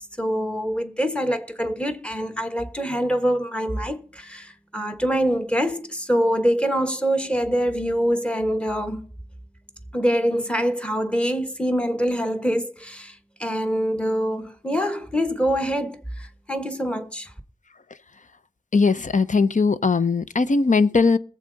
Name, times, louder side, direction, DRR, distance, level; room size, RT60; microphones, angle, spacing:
voice 1, 0.2-9.0 9.9-17.3, equal, 5° left, 1.3 m, -25 dB
voice 2, 18.7-21.2, left 4 dB, 55° left, 0.7 m, -19 dB
21.0 x 7.5 x 4.0 m
wide cardioid pair, 70°, 15 cm